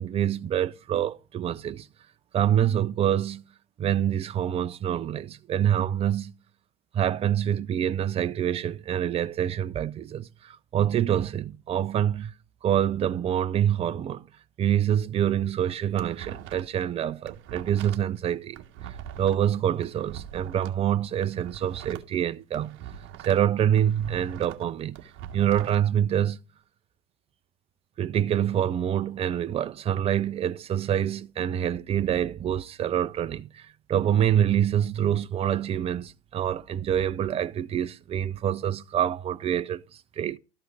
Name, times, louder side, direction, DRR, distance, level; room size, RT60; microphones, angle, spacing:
voice 1, 0.0-1.9 2.3-3.4 3.8-6.4 6.9-12.3 12.6-14.3 14.6-22.8 23.2-25.0 25.3-26.4 28.0-40.4, right 10 dB, 20° right, 0.5 m, -26 dB
sound 1, 15.8-16.8 17.1-20.7 21.1-23.5 23.8-25.8, right 10 dB, 35° right, 1.7 m, -42 dB
13.0 x 5.7 x 4.7 m
hypercardioid pair, 105°, 34 cm